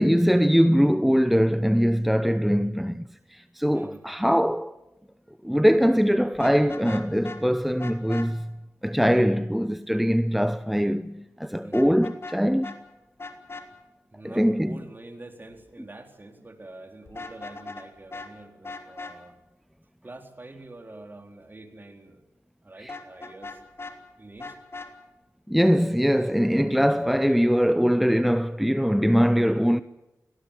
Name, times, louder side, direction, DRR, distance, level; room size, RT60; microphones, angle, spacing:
voice 1, 0.0-3.0 3.3-4.7 5.4-8.5 8.8-12.7 14.2-14.8 22.8-22.9 25.5-29.8, equal, ahead, 0.7 m, -22 dB
voice 2, 3.7-4.1 11.6-11.9 14.1-19.3 20.0-22.2 22.6-23.6 24.2-24.6 26.9-27.2, right 2 dB, 35° right, 4.0 m, -46 dB
Vehicle horn car horn honking, 6.3-7.4 7.8-8.3 11.7-12.4 12.6-12.8 13.2-13.7 17.1-17.9 18.1-18.3 18.6-19.1 22.9-24.0 24.4-24.9, left 3 dB, 45° left, 3.0 m, -38 dB
18.0 x 17.5 x 10.0 m
cardioid pair, 50°, 6 cm